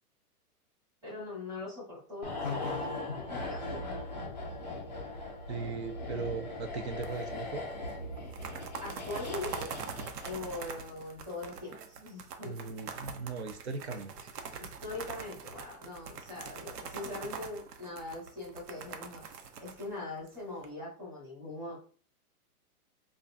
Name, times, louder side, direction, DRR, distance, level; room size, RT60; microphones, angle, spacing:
voice 1, 1.0-2.9 3.3-3.9 8.8-9.7 10.2-12.5 14.6-21.8, left 2 dB, 5° right, -10 dB, 1.7 m, -42 dB
sound 1, 2.2-10.8 11.0-11.2, left 2 dB, 30° left, 0.4 m, -39 dB
voice 2, 5.5-7.7 12.4-14.3, right 4 dB, 45° right, 7 dB, 0.5 m, -38 dB
sound 2, 7.0-7.5 7.7-7.8 8.2-20.7, right 6 dB, 85° right, 0.9 m, -43 dB
3.8 x 2.4 x 3.3 m, 0.43 s
hypercardioid pair, 175°, 46 cm